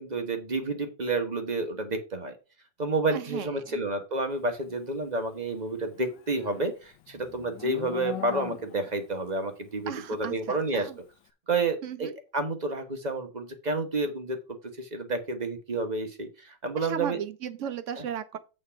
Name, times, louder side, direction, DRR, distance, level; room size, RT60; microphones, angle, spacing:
voice 1, 0.0-2.3 2.8-10.9 11.5-14.4 14.8-17.2 18.0-18.1, right 2 dB, 30° right, 1.0 m, -30 dB
voice 2, 3.1-3.8 9.9-11.0 11.8-12.1 16.8-18.4, right 9 dB, 60° right, 0.8 m, -36 dB
Livestock farm animals working animals, 5.8-9.0, left 12 dB, 75° left, 1.3 m, -40 dB
8.5 x 4.3 x 5.7 m
omnidirectional pair, 2.1 m